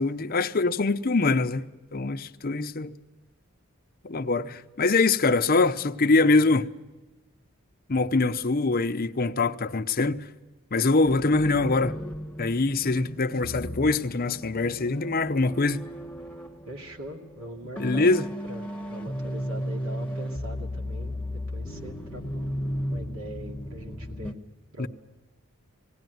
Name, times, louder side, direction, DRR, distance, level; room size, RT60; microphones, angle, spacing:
voice 1, 0.0-2.9 4.0-6.7 7.9-10.2 10.7-12.0 12.4-15.8 17.8-18.2 24.8-24.9, left 3 dB, 45° left, 0.7 m, -24 dB
sound 1, 11.0-24.3, equal, 5° left, 1.2 m, -35 dB
voice 2, 16.7-21.2 21.5-22.5 22.9-24.3 24.7-24.9, right 1 dB, 65° right, 2.5 m, -42 dB
19.0 x 17.5 x 9.3 m
head